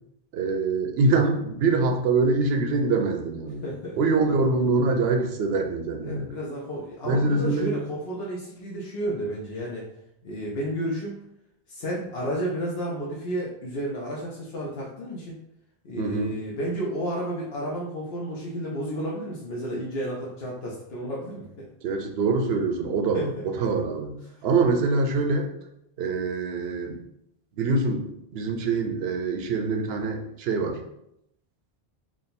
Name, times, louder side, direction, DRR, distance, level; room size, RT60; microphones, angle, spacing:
voice 1, 0.3-3.6 4.0-6.3 7.0-7.7 16.0-16.4 21.8-24.1 24.4-25.5 26.0-27.0 27.6-30.8, right 3 dB, 80° right, 4 dB, 0.8 m, -24 dB
voice 2, 3.6-4.0 6.0-9.9 10.2-11.2 11.7-15.4 15.8-21.7 23.1-23.3, equal, 75° left, -4 dB, 1.0 m, -32 dB
3.7 x 2.2 x 4.0 m, 0.80 s
omnidirectional pair, 1.0 m